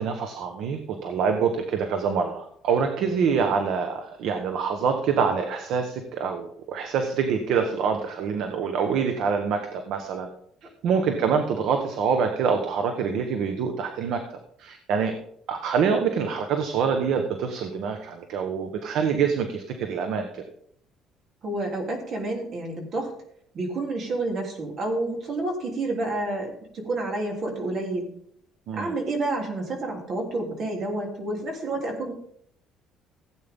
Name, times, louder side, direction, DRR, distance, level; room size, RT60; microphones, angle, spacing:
voice 1, 0.0-10.3 10.8-14.2 14.6-15.1 15.5-20.4 28.7-28.9, right 6 dB, 65° right, 6 dB, 1.3 m, -25 dB
voice 2, 10.9-11.2 21.4-23.1 23.5-28.1 28.7-32.1, right 2 dB, 45° right, 1 dB, 3.3 m, -29 dB
16.5 x 8.6 x 3.7 m, 0.68 s
cardioid pair, 155°, 0 cm